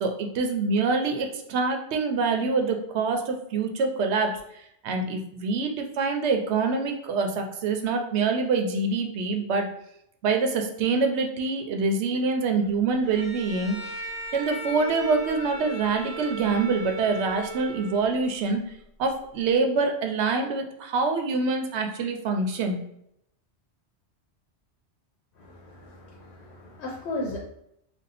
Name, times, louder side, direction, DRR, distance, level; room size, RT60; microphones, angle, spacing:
voice 1, 0.0-4.3 4.8-9.6 10.2-13.8 14.3-18.6 19.0-22.8, right 4 dB, 80° right, 4 dB, 0.9 m, -25 dB
Bowed string instrument, 13.0-18.3, right 1 dB, 30° left, 1.1 m, -37 dB
voice 2, 25.4-27.4, left 2 dB, 80° left, -1 dB, 0.9 m, -36 dB
2.6 x 2.3 x 4.0 m, 0.76 s
omnidirectional pair, 1.1 m